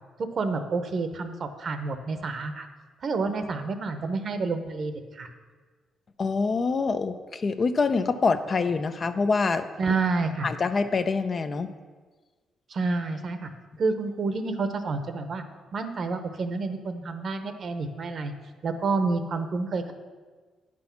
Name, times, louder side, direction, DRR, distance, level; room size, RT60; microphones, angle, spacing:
voice 1, 0.2-2.7 3.0-5.3 9.8-10.5 12.7-13.5 13.8-15.4 15.7-18.3 18.6-19.9, right 3 dB, 50° right, 8 dB, 0.9 m, -29 dB
voice 2, 6.2-9.7 10.4-11.7, left 4 dB, 40° left, 9 dB, 0.5 m, -25 dB
9.5 x 6.1 x 5.8 m, 1.4 s
cardioid pair, 100°, 0 cm